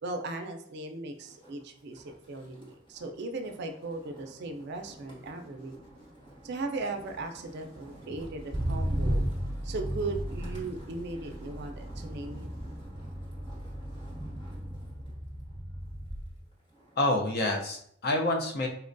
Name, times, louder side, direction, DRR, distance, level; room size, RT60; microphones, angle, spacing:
voice 1, 0.0-5.8 6.4-9.3 9.6-12.5, right 2 dB, 55° right, 6 dB, 0.4 m, -37 dB
Motor vehicle (road), 1.3-1.6 2.0-16.4 16.8-17.2, equal, 25° left, 1.1 m, -37 dB
voice 2, 17.0-18.7, left 2 dB, 50° left, 1 dB, 0.5 m, -27 dB
4.1 x 2.2 x 2.5 m, 0.67 s
head